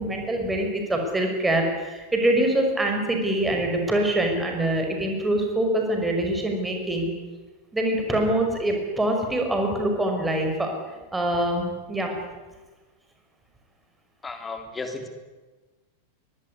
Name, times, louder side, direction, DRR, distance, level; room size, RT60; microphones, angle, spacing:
voice 1, 0.0-7.1 7.7-12.2, right 1 dB, 10° right, 3 dB, 5.7 m, -24 dB
voice 2, 14.2-15.1, left 3 dB, 15° left, 6 dB, 3.4 m, -34 dB
24.0 x 21.5 x 10.0 m, 1.2 s
figure-of-eight pair, 90°, 0 cm